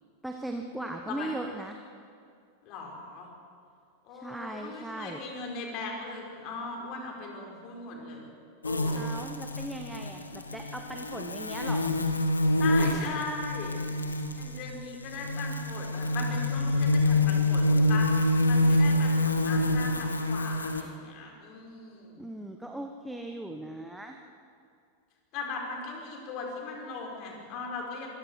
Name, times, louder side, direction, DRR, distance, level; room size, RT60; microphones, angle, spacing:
voice 1, 0.2-1.8 4.1-5.2 8.9-11.9 22.2-24.2, right 1 dB, 5° right, 4 dB, 1.3 m, -38 dB
voice 2, 2.6-3.3 4.0-8.3 8.6-9.2 12.6-14.0 14.3-22.2 25.3-28.1, left 3 dB, 40° left, 0 dB, 5.2 m, -38 dB
sound 1, 8.6-20.8, left 1 dB, 80° left, 1.5 m, -27 dB
26.0 x 22.5 x 4.9 m, 2.4 s
figure-of-eight pair, 90°, 0 cm